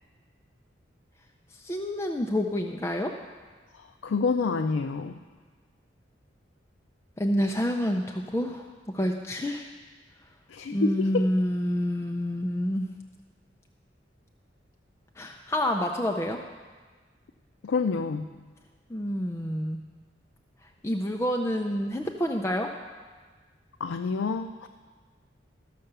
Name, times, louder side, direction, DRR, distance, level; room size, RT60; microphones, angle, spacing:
voice 1, 1.5-3.2 7.2-8.7 8.9-9.7 10.7-12.9 15.2-16.4 18.9-19.8 20.8-22.7, equal, 15° left, 2 dB, 0.4 m, -28 dB
voice 2, 4.0-5.2 10.5-11.2 17.6-18.3 23.8-24.7, left 4 dB, 85° left, 7 dB, 0.4 m, -28 dB
13.5 x 5.6 x 6.6 m, 1.5 s
head